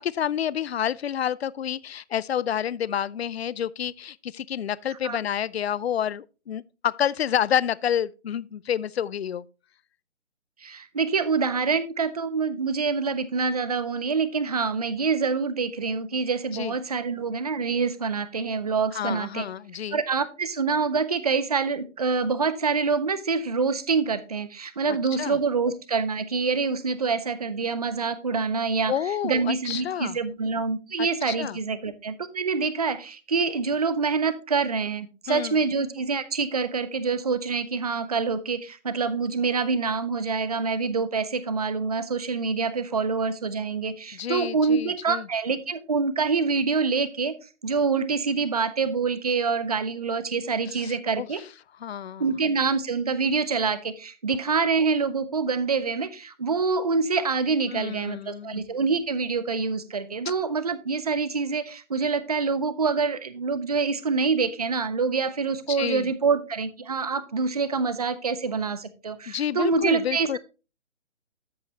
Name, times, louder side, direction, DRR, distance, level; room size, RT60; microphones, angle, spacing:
voice 1, 0.0-9.5 16.5-16.7 18.9-20.0 25.2-25.4 28.9-30.2 31.0-31.6 35.3-35.6 44.1-45.3 50.7-51.3 51.8-52.3 57.7-58.6 65.7-66.1 69.3-70.4, left 9 dB, 60° left, 0.4 m, -29 dB
voice 2, 10.6-19.5 19.9-28.9 29.2-47.3 47.6-51.4 52.2-70.4, right 5 dB, 35° right, 0.5 m, -26 dB
13.5 x 5.2 x 2.8 m
hypercardioid pair, 165°, 36 cm